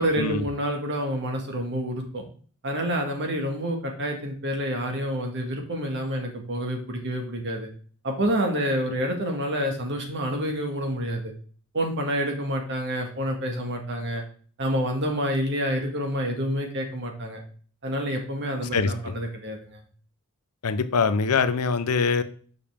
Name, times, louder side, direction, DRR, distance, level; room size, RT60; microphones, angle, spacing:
voice 1, 0.0-2.3 2.6-7.7 8.0-11.3 11.7-14.2 14.6-17.4 17.8-19.8, equal, 55° right, 1.8 m, -28 dB
voice 2, 18.7-19.1 20.6-22.2, left 5 dB, 85° left, 0.7 m, -23 dB
6.9 x 5.7 x 3.6 m
head